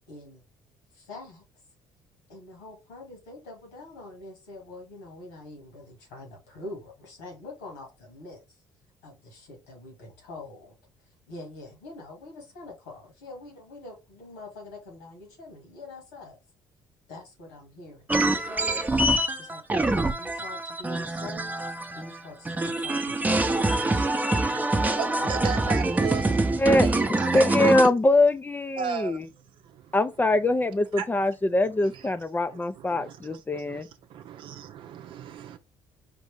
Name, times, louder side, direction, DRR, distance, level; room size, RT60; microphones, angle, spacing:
voice 1, 0.1-0.4 0.9-1.4 2.3-8.6 9.0-10.8 11.3-16.4 17.1-24.3 25.2-25.9, left 2 dB, 90° left, 2.3 m, -45 dB
sound 1, 18.1-22.2 22.4-27.9, right 2 dB, 15° right, 0.8 m, -25 dB
voice 2, 25.0-26.4 26.8-27.9 28.8-29.2 29.6-29.9 31.0-31.1 32.8-33.8 34.1-35.6, right 8 dB, 60° right, 0.7 m, -36 dB
voice 3, 27.3-29.3 29.9-33.9, left 2 dB, 20° left, 0.5 m, -23 dB
5.1 x 2.6 x 3.5 m
hypercardioid pair, 60°, 10 cm